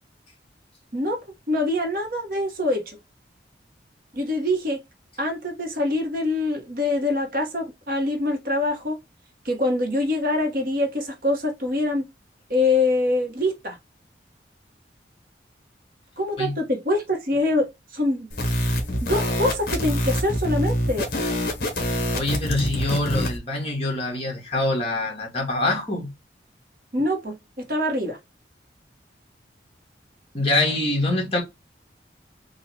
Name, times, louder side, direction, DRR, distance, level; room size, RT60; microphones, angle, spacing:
voice 1, 1.5-3.0 4.1-4.8 5.2-9.0 9.4-12.0 12.5-13.8 16.2-18.3 19.0-21.1 26.9-28.2, left 2 dB, 50° right, 1.1 m, -24 dB
sound 1, 18.3-23.4, left 1 dB, 50° left, 1.3 m, -25 dB
voice 2, 22.1-26.1 30.3-31.4, left 2 dB, 30° left, 1.7 m, -25 dB
4.1 x 2.4 x 4.1 m
head